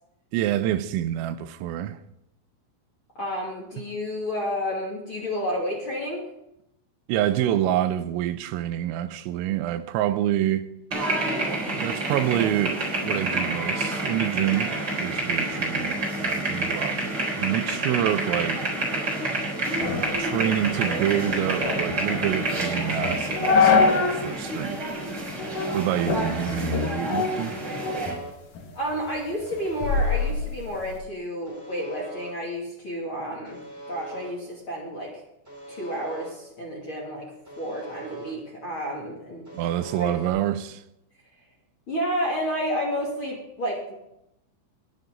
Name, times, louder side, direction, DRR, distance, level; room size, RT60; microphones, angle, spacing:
voice 1, 0.3-2.0 7.1-10.7 11.7-14.7 15.0-18.6 20.2-24.8 25.7-27.5 39.5-40.8, right 12 dB, 85° right, 3.4 m, -27 dB
voice 2, 3.1-6.2 28.7-33.6 33.9-35.2 35.7-37.3 37.6-39.5 40.0-40.1 41.9-43.9, equal, 35° left, 2.4 m, -30 dB
sound 1, 10.9-28.1, right 2 dB, 25° right, 3.9 m, -28 dB
sound 2, 19.8-24.3 24.6-24.7 25.4-25.7 26.1-28.2 28.6-31.0, left 4 dB, 55° left, 2.6 m, -25 dB
Alarm, 25.5-26.3 27.5-28.3 29.5-30.3 31.5-32.3 33.5-34.3 35.5-36.3 37.5-38.3 39.5-40.3, right 3 dB, 5° right, 2.6 m, -41 dB
21.0 x 9.2 x 3.9 m
omnidirectional pair, 5.9 m